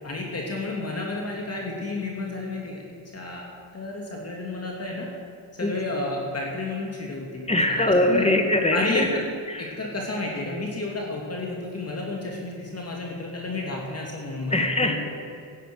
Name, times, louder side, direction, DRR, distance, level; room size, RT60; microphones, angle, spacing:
voice 1, 0.0-3.4 3.7-5.1 5.6-7.5 8.1-8.3 8.7-9.2 9.6-15.1, left 2 dB, 30° left, -1 dB, 2.8 m, -31 dB
voice 2, 7.5-9.8 14.5-15.1, left 1 dB, 15° left, 5 dB, 2.0 m, -23 dB
15.0 x 11.0 x 6.4 m, 2.4 s
supercardioid pair, 80°, 48 cm